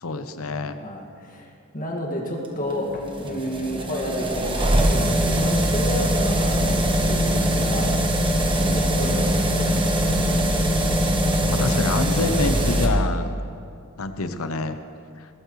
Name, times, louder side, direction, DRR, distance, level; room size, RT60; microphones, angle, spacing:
voice 1, 0.0-0.8 8.6-8.9 11.2-13.3 14.0-14.8 15.2-15.3, left 3 dB, 85° left, 9 dB, 0.8 m, -27 dB
voice 2, 0.8-8.0 8.5-9.3, equal, 40° left, -1 dB, 2.0 m, -31 dB
sound 1, 2.5-12.9, equal, 25° right, 1.2 m, -22 dB
18.5 x 13.5 x 3.2 m, 2.5 s
head